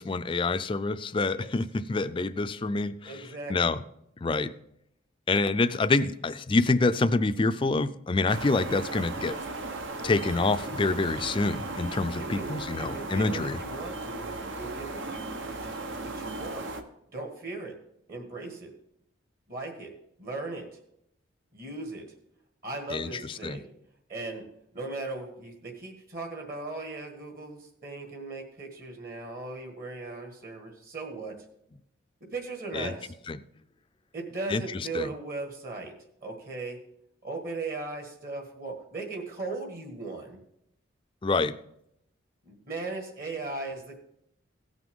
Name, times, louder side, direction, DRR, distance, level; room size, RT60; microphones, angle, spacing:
voice 1, 0.0-3.1 3.5-3.8 4.2-4.5 5.3-9.4 10.0-13.6 22.9-23.1 23.4-23.6 32.7-32.9 33.3-33.4 34.5-34.6 34.9-35.1 41.2-41.6, left 3 dB, 25° left, 11 dB, 0.4 m, -26 dB
voice 2, 3.1-3.8 12.1-16.7 17.1-17.8 18.1-18.7 19.5-20.8 21.5-22.1 22.6-23.7 24.1-31.4 32.2-33.1 34.1-36.8 37.2-40.4 42.4-44.0, right 3 dB, 45° right, 2 dB, 1.6 m, -38 dB
sound 1, 8.3-16.8, right 2 dB, 75° right, 1.0 m, -36 dB
17.0 x 6.0 x 3.7 m, 0.76 s
head